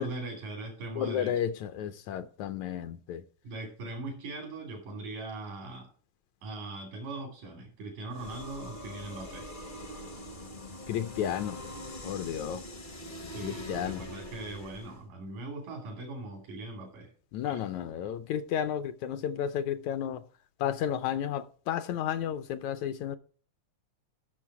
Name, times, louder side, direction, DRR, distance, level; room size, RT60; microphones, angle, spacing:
voice 1, 0.0-1.4 3.4-5.9 6.4-9.5 13.3-17.1 17.4-17.7, right 2 dB, 90° right, 4.2 m, -40 dB
voice 2, 1.0-3.2 10.9-11.6 12.0-12.7 13.4-14.0 17.3-20.2 20.6-23.2, left 9 dB, 80° left, 1.8 m, -32 dB
sound 1, 8.1-15.0, left 1 dB, 60° left, 0.5 m, -43 dB
14.0 x 6.6 x 4.8 m
omnidirectional pair, 3.5 m